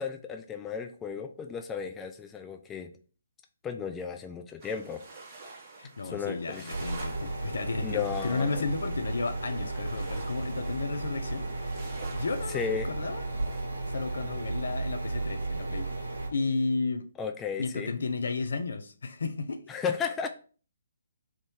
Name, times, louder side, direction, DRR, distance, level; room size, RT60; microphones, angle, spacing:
voice 1, 0.0-2.9 3.6-5.0 6.1-6.7 7.8-8.5 12.5-12.9 17.2-18.0 19.7-20.3, left 6 dB, 15° left, 0.4 m, -34 dB
sound 1, 4.6-13.6, right 3 dB, 30° right, 1.4 m, -48 dB
voice 2, 5.8-11.4 12.1-13.3 13.9-15.9 16.3-17.1 17.6-19.6, left 4 dB, 65° left, 0.5 m, -33 dB
sound 2, 6.7-16.3, right 2 dB, 70° right, 1.4 m, -34 dB
3.6 x 2.6 x 4.6 m
figure-of-eight pair, 135°, 0 cm